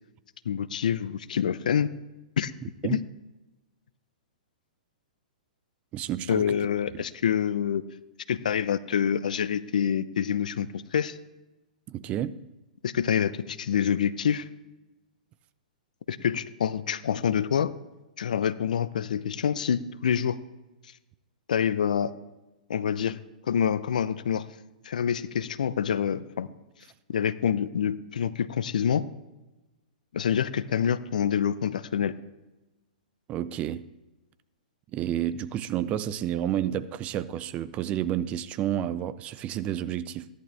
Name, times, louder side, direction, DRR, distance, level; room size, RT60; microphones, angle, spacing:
voice 1, 0.5-1.9 2.4-2.5 2.8-3.0 6.3-7.8 8.3-11.2 12.8-14.5 16.1-17.7 18.2-20.4 21.5-22.1 22.7-23.2 23.5-24.5 24.8-26.5 27.1-29.0 30.1-32.1, left 8 dB, 70° left, 0.6 m, -26 dB
voice 2, 5.9-6.6 6.9-7.0 11.9-12.4 33.3-33.8 34.9-40.3, right 11 dB, 30° right, 0.5 m, -30 dB
16.0 x 11.0 x 3.4 m
hypercardioid pair, 120°, 4 cm